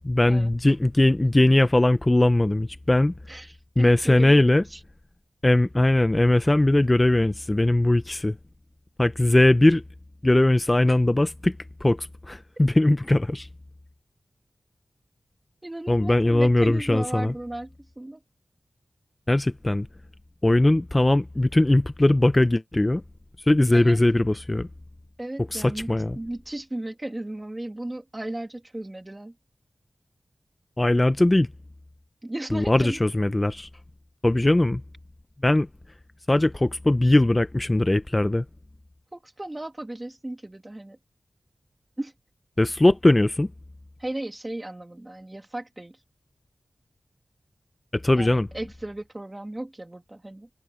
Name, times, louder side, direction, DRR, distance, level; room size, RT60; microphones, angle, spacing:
voice 1, 0.0-3.1 3.8-4.6 5.4-8.4 9.0-9.8 10.2-11.6 11.8-13.5 15.9-17.3 19.3-19.9 20.4-23.0 23.5-24.7 25.5-26.2 30.8-31.5 32.5-33.7 34.2-34.8 35.4-35.7 36.3-38.4 42.6-43.5 47.9-48.5, left 1 dB, 25° left, 0.7 m, -20 dB
voice 2, 3.3-4.8 15.6-18.2 23.7-24.0 25.2-29.3 32.2-33.0 39.1-41.0 42.0-42.1 44.0-46.0 48.1-50.5, right 1 dB, 25° right, 2.6 m, -35 dB
wide cardioid pair, 60°, 0 cm